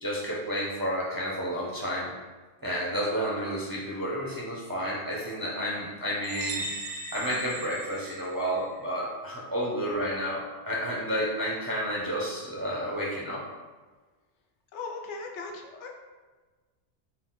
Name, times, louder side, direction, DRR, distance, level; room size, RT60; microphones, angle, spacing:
voice 1, 0.0-2.1 2.6-6.7 7.1-13.4, equal, 30° right, -6 dB, 0.4 m, -31 dB
sound 1, 6.2-8.8, right 3 dB, 80° right, 0.9 m, -38 dB
voice 2, 14.7-15.9, left 4 dB, 80° left, 2 dB, 0.9 m, -38 dB
3.8 x 2.3 x 3.9 m, 1.3 s
omnidirectional pair, 1.2 m